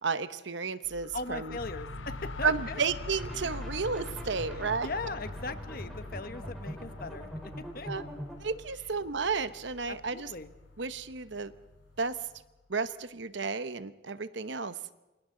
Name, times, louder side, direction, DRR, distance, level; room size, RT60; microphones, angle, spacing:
voice 1, 0.0-1.6 2.4-4.9 7.9-8.0 8.4-10.3 10.8-11.5 12.0-12.2 12.7-14.7, right 5 dB, 65° right, 12 dB, 0.9 m, -32 dB
sound 1, 0.8-12.5, left 3 dB, 70° left, 0.7 m, -45 dB
voice 2, 1.1-2.8 4.5-7.9 9.9-10.5, left 3 dB, 45° left, 9 dB, 1.2 m, -39 dB
sound 2, 1.6-12.4, right 2 dB, 80° right, 4.2 m, -52 dB
sound 3, 3.2-8.4, equal, ahead, 3.9 m, -42 dB
28.5 x 26.0 x 3.9 m, 1.1 s
head